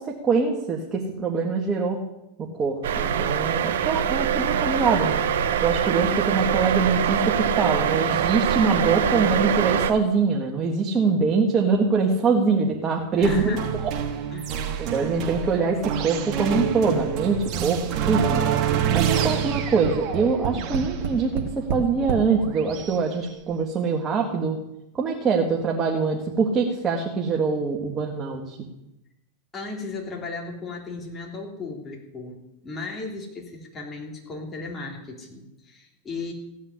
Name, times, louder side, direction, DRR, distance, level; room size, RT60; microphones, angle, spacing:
voice 1, 0.0-2.0 2.4-5.2 5.6-13.9 14.8-18.5 18.9-24.6 25.0-28.6, right 4 dB, 25° right, -1 dB, 1.9 m, -24 dB
sound 1, 2.8-9.9, right 8 dB, 80° right, 1.1 m, -23 dB
voice 2, 13.2-13.7 14.3-14.6 29.5-36.3, left 3 dB, 20° left, 0 dB, 3.5 m, -36 dB
sound 2, 13.2-23.0, right 9 dB, 45° right, 1.9 m, -27 dB
Tap, 19.3-22.3 23.1-23.2 23.5-23.6, right 6 dB, 60° right, 2.0 m, -29 dB
17.0 x 5.6 x 9.8 m, 0.89 s
supercardioid pair, 125°, 0 cm